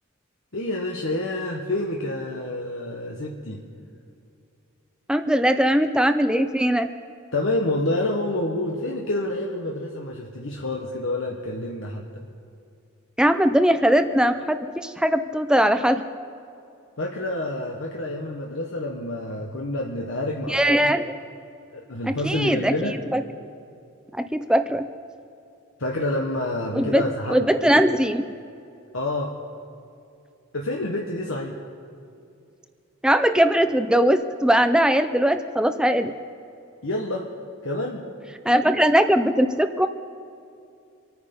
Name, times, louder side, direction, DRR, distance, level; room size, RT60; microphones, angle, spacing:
voice 1, 0.5-3.6 7.3-12.0 17.0-20.9 21.7-23.0 25.8-27.5 28.9-29.3 30.5-31.6 36.8-37.3 37.6-38.0, left 1 dB, 60° left, 0 dB, 1.3 m, -28 dB
voice 2, 5.1-6.9 13.2-16.0 20.5-21.2 22.1-22.7 23.1-23.2 24.1-24.9 26.7-27.0 27.3-28.2 33.0-36.1 38.5-39.9, equal, 5° right, 10 dB, 0.5 m, -20 dB
26.0 x 9.5 x 5.4 m, 2.5 s
head